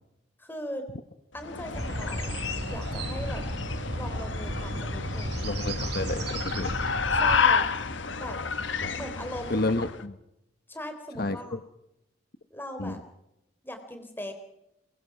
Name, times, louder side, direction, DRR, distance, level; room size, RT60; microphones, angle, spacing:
voice 1, 0.4-0.9 1.3-2.4 2.7-3.4 4.0-5.5 7.1-7.7 8.2-8.4 8.9-9.7 10.7-11.6 12.5-13.0 13.6-14.3, left 1 dB, 10° left, 6 dB, 3.6 m, -39 dB
sound 1, 1.4-10.0, left 5 dB, 85° left, 1.6 m, -30 dB
sound 2, 1.7-7.4, right 1 dB, 60° right, 3.4 m, -34 dB
voice 2, 5.4-6.8 8.8-9.0 9.5-10.2 11.2-11.6 12.8-13.0, left 2 dB, 55° left, 10 dB, 1.1 m, -31 dB
23.5 x 22.0 x 5.9 m, 0.85 s
head